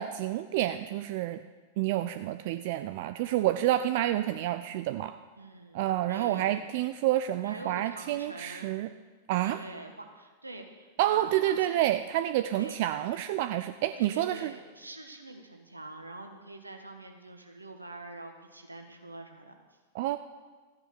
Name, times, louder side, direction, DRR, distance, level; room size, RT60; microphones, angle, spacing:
voice 1, 0.0-1.4 1.8-5.2 5.7-8.9 9.3-9.6 11.0-14.5 19.9-20.2, right 13 dB, 50° right, 10 dB, 0.5 m, -29 dB
voice 2, 5.4-6.6 7.4-8.7 9.4-11.8 12.5-12.8 14.0-19.8, right 2 dB, 85° right, 5 dB, 1.5 m, -45 dB
14.0 x 9.7 x 6.4 m, 1.4 s
figure-of-eight pair, 95°, 0 cm